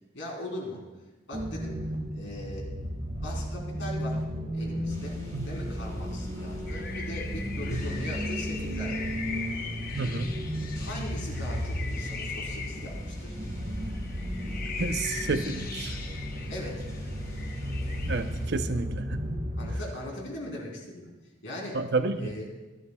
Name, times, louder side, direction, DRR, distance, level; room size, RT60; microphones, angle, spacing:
voice 1, 0.1-0.8 1.3-1.8 2.1-2.7 3.1-4.2 4.5-5.2 5.4-9.0 10.7-13.3 16.5-16.9 19.6-21.1 21.4-21.8 22.2-22.5, left 1 dB, 75° left, -1 dB, 3.7 m, -39 dB
sound 1, 1.3-19.8, equal, 40° right, 1.7 m, -34 dB
sound 2, 4.9-18.5, equal, 20° left, 4.2 m, -49 dB
sound 3, 6.7-18.5, left 5 dB, 50° left, 1.0 m, -40 dB
voice 2, 9.9-10.4 14.8-16.0 18.0-19.3 21.7-22.3, right 3 dB, 60° right, 9 dB, 0.7 m, -30 dB
25.0 x 11.0 x 2.3 m, 1.1 s
head